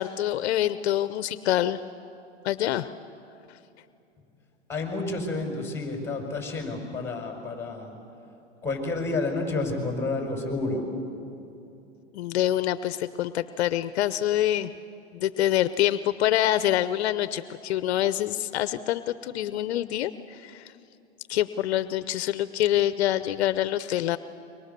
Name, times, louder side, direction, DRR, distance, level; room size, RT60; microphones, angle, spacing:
voice 1, 0.0-1.8 2.4-2.9 12.1-14.7 15.1-20.7 21.3-24.2, left 12 dB, 70° left, 13 dB, 0.8 m, -26 dB
voice 2, 4.7-8.0 8.6-10.9, left 3 dB, 5° left, 2 dB, 5.2 m, -30 dB
28.5 x 23.5 x 6.8 m, 2.7 s
hypercardioid pair, 130°, 34 cm